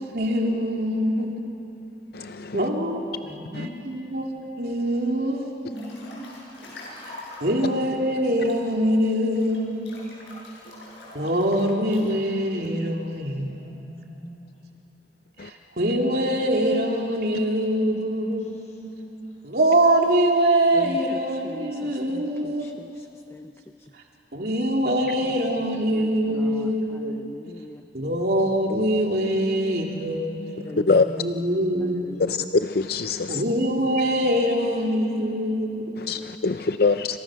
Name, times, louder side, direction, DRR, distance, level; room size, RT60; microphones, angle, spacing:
voice 1, 0.1-1.3 2.5-3.0 3.6-4.3 4.6-5.5 7.4-9.8 11.1-13.5 15.4-18.4 19.4-22.6 24.3-27.2 27.9-30.4 31.1-32.1 33.3-35.9, right 1 dB, 60° right, 0 dB, 3.1 m, -23 dB
voice 2, 0.9-1.5 3.2-3.8 5.7-6.3 9.2-10.4 13.4-14.5 17.7-19.3 20.8-21.1 21.7-22.0 22.3-22.8 24.8-24.9 25.2-25.8 26.3-27.2 29.2-32.0 34.4-36.1, equal, 40° left, -1 dB, 6.5 m, -42 dB
voice 3, 2.1-2.6 15.4-15.5 30.9-31.1 32.2-33.4 36.1-37.2, left 4 dB, 60° left, 10 dB, 0.6 m, -23 dB
Breathing / Bathtub (filling or washing) / Splash splatter, 5.7-7.6 8.2-12.2, left 2 dB, 85° left, 7.5 m, -44 dB
voice 4, 20.7-23.5 23.8-23.9 25.9-27.8 30.6-30.9 31.5-32.2, left 1 dB, 15° left, 7 dB, 0.6 m, -42 dB
28.0 x 27.5 x 6.4 m, 2.8 s
head